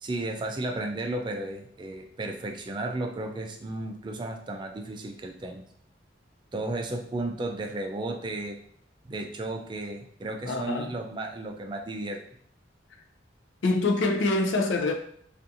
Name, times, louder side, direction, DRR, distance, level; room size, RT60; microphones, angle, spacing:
voice 1, 0.0-5.6 6.5-8.6 9.1-12.2, right 2 dB, 25° right, 0.3 m, -34 dB
voice 2, 10.5-10.9 13.6-14.9, left 2 dB, 80° left, 0.4 m, -25 dB
2.5 x 2.4 x 2.7 m
head